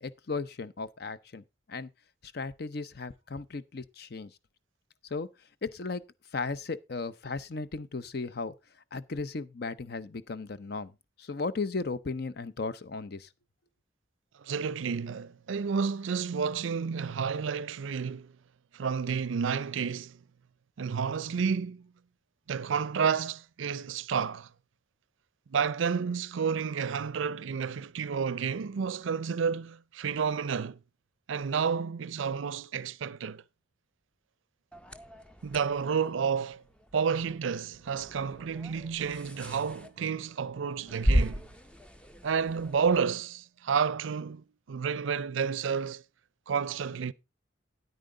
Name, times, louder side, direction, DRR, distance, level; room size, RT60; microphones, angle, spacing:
voice 1, 0.0-1.4 1.7-1.9 2.3-4.3 5.1-5.3 5.6-6.0 6.3-8.5 8.9-10.9 11.2-13.3, left 4 dB, 55° left, 0.6 m, -35 dB
voice 2, 14.4-18.3 18.7-20.2 20.8-21.9 22.5-24.5 25.5-30.8 31.3-33.4 35.4-36.6 36.9-41.4 42.2-46.0 46.5-47.1, right 6 dB, 80° right, 0.4 m, -30 dB
sound 1, 34.7-43.0, equal, 5° left, 0.5 m, -35 dB
9.4 x 9.1 x 3.7 m
head